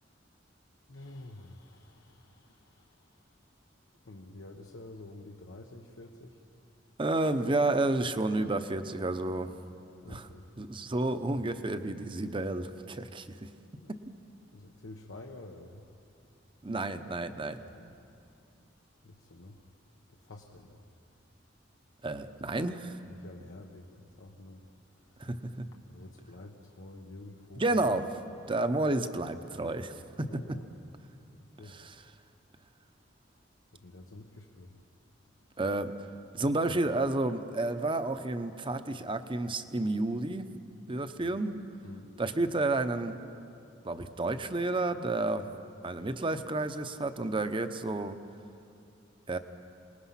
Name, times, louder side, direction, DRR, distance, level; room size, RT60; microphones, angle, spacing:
voice 1, 0.9-3.2 4.0-6.4 10.0-10.5 13.8-13.9 14.5-15.9 17.7-17.9 19.0-19.7 20.1-20.9 23.1-24.7 25.0-25.3 25.9-27.9 28.8-29.3 30.3-30.7 31.4-31.8 33.7-34.8 41.2-41.4 41.8-42.2, left 2 dB, 90° left, 0 dB, 1.1 m, -49 dB
voice 2, 7.0-9.5 10.1-10.3 10.6-13.5 16.6-17.6 22.0-23.0 25.2-25.7 27.6-28.1 28.5-30.6 31.6-32.0 35.6-35.9 36.3-40.5 40.9-41.6 42.2-43.2 43.8-45.5 45.8-48.2 49.3-49.4, right 2 dB, 25° right, 10 dB, 0.8 m, -31 dB
27.0 x 19.5 x 5.8 m, 2.6 s
head